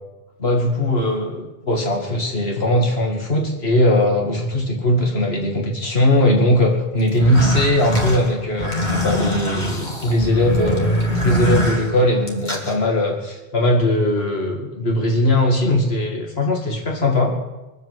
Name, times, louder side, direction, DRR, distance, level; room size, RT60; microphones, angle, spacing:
voice 1, 0.4-8.7 9.0-17.4, left 1 dB, 75° left, 0 dB, 2.5 m, -19 dB
sound 1, 7.1-12.7, equal, 45° left, 2.8 m, -23 dB
23.0 x 8.1 x 7.5 m, 1.1 s
omnidirectional pair, 1.1 m